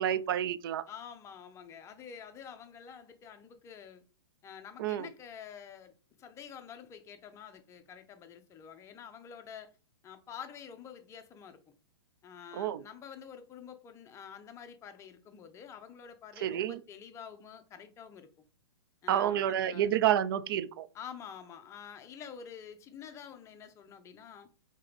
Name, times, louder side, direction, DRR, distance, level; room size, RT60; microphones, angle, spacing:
voice 1, 0.0-0.8 4.8-5.1 12.5-12.8 16.4-16.8 19.1-20.9, right 11 dB, 55° right, 0.4 m, -29 dB
voice 2, 0.9-4.0 4.4-9.7 10.0-11.6 12.2-18.3 19.0-19.9 20.9-24.5, left 7 dB, 20° left, 0.6 m, -48 dB
4.6 x 2.9 x 3.4 m
hypercardioid pair, 125°, 15 cm